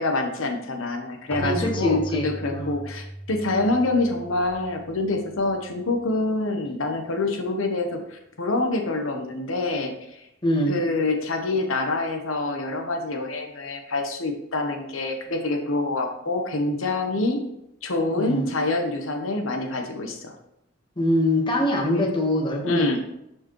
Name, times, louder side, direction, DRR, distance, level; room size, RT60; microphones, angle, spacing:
voice 1, 0.0-10.2 10.7-17.4 17.8-20.3 21.8-22.1 22.6-23.0, left 2 dB, 85° left, 4 dB, 1.0 m, -26 dB
Keyboard (musical), 1.3-5.8, right 1 dB, 5° left, 0.8 m, -37 dB
voice 2, 1.4-2.7 10.4-10.8 18.2-18.5 21.0-23.0, left 1 dB, 25° left, 0 dB, 1.4 m, -23 dB
11.0 x 4.8 x 3.1 m, 0.81 s
head